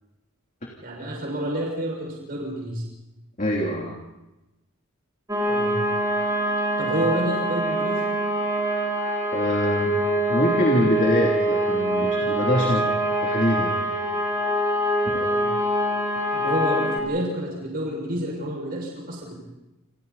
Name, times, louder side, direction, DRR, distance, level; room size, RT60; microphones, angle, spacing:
voice 1, 0.8-2.8 5.4-5.9 6.8-8.1 15.1-15.5 16.3-19.4, right 1 dB, 40° right, -1 dB, 6.4 m, -29 dB
voice 2, 3.4-4.0 9.3-13.9 15.0-15.1, left 1 dB, 35° left, -1 dB, 3.2 m, -25 dB
sound 1, 5.3-17.0, right 1 dB, 15° right, 3.7 m, -24 dB
29.0 x 28.5 x 4.2 m, 0.97 s
head